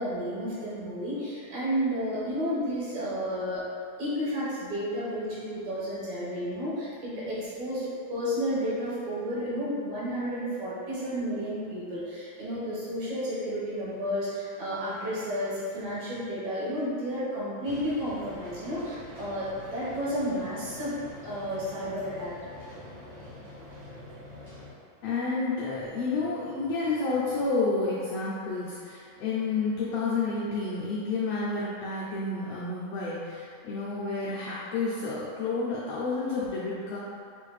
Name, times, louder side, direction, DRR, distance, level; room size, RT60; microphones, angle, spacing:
voice 1, 0.0-3.6 4.0-21.0 21.2-22.3, equal, 70° right, -9 dB, 2.5 m, -32 dB
sound 1, 17.6-24.7, left 1 dB, 45° right, 0.8 m, -45 dB
voice 2, 25.0-37.0, left 3 dB, 80° left, -7 dB, 1.4 m, -30 dB
6.3 x 2.5 x 3.2 m, 2.4 s
omnidirectional pair, 3.5 m